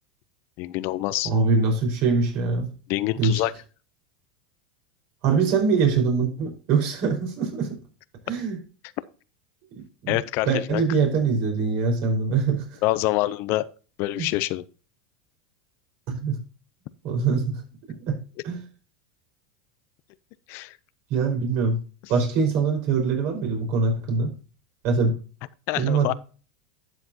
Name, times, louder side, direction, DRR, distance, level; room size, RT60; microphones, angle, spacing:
voice 1, 0.6-1.3 2.9-3.5 10.1-10.8 12.3-12.4 12.8-13.7 14.0-14.6 20.5-20.8 25.7-26.1, left 17 dB, 55° left, 0.6 m, -26 dB
voice 2, 1.2-2.7 3.2-3.4 5.2-7.8 8.3-8.6 9.7-10.2 10.4-12.7 14.2-14.3 16.1-16.4 17.0-17.6 18.1-18.2 18.4-18.6 21.1-21.8 22.1-24.3 24.8-25.2 25.7-26.1, right 4 dB, 60° right, 4.9 m, -23 dB
12.0 x 7.9 x 2.8 m
hypercardioid pair, 105°, 5 cm